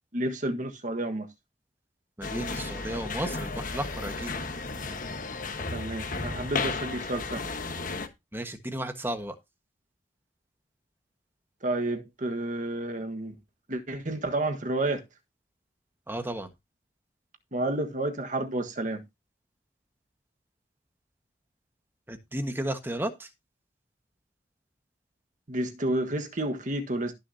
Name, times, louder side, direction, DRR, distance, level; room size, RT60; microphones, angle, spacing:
voice 1, 0.1-1.3 5.7-7.5 11.6-13.3 13.7-15.0 17.5-19.0 25.5-27.1, right 1 dB, 45° right, 1.5 m, -30 dB
sound 1, 2.2-8.1, left 3 dB, 50° left, 1.3 m, -34 dB
voice 2, 2.2-4.3 8.3-9.3 16.1-16.5 22.1-23.3, right 1 dB, 15° right, 1.4 m, -33 dB
17.5 x 6.6 x 2.8 m
head